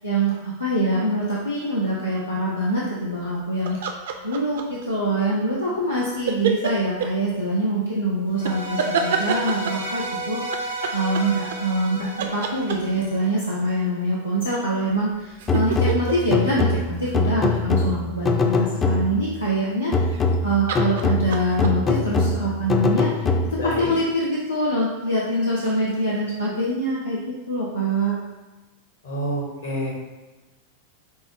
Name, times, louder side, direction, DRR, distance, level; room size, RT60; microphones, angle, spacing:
voice 1, 0.0-3.9 4.2-20.1 20.4-27.2 27.5-28.1, right 1 dB, 85° left, -6 dB, 0.6 m, -24 dB
sound 1, 3.7-4.8 6.3-7.1 8.5-9.9 10.5-11.9 12.2-13.1 14.9-17.6 20.0-20.4 20.7-21.7, right 6 dB, 60° right, 0.4 m, -27 dB
sound 2, 8.4-13.6, right 2 dB, 80° right, 0.8 m, -32 dB
sound 3, 15.5-19.4 19.9-23.8, left 3 dB, 20° left, 0.3 m, -23 dB
voice 2, 23.6-23.9 29.0-29.9, equal, 65° left, -1 dB, 1.0 m, -28 dB
5.2 x 2.0 x 3.2 m, 1.2 s
figure-of-eight pair, 90°, 0 cm